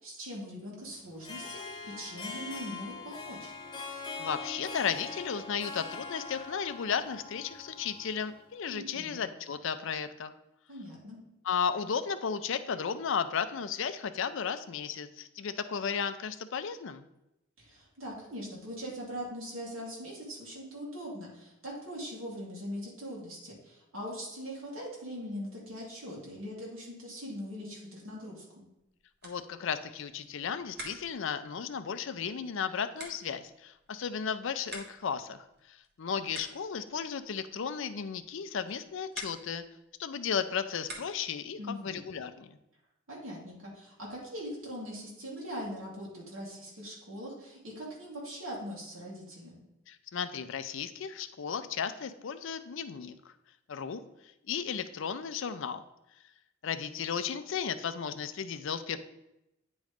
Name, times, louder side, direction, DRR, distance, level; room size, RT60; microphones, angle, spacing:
voice 1, 0.0-3.5 8.7-9.2 10.7-11.2 17.6-28.6 41.6-42.0 43.1-49.6, equal, 75° right, -4 dB, 2.3 m, -41 dB
Harp, 1.1-8.4, left 4 dB, 20° left, 1.0 m, -42 dB
voice 2, 4.2-10.3 11.4-17.1 29.2-39.6 40.0-42.6 49.9-53.1 53.7-54.0 54.5-55.8 56.6-59.0, left 7 dB, 65° left, 10 dB, 0.5 m, -34 dB
sound 1, 28.6-41.5, right 1 dB, 55° right, 1.4 m, -51 dB
9.3 x 3.1 x 5.0 m, 0.89 s
head